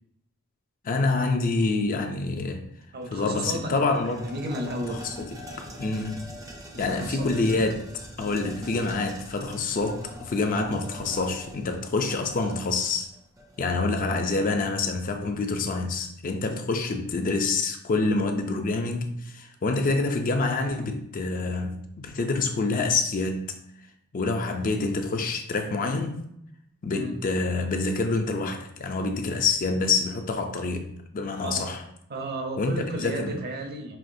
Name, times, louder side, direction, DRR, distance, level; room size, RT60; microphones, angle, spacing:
voice 1, 0.8-2.6 3.1-4.3 4.9-5.3 5.8-6.2 6.8-7.8 8.2-13.1 13.6-23.5 24.1-26.2 26.8-31.8 32.6-33.4, left 3 dB, 40° left, 5 dB, 0.4 m, -27 dB
voice 2, 2.9-5.2 6.7-7.5 26.9-27.1 31.4-31.7 32.1-34.0, right 1 dB, 50° right, 3 dB, 0.8 m, -34 dB
sound 1, 3.0-3.1 3.4-14.1, equal, 15° right, 0.5 m, -43 dB
5.6 x 2.9 x 2.6 m, 0.74 s
head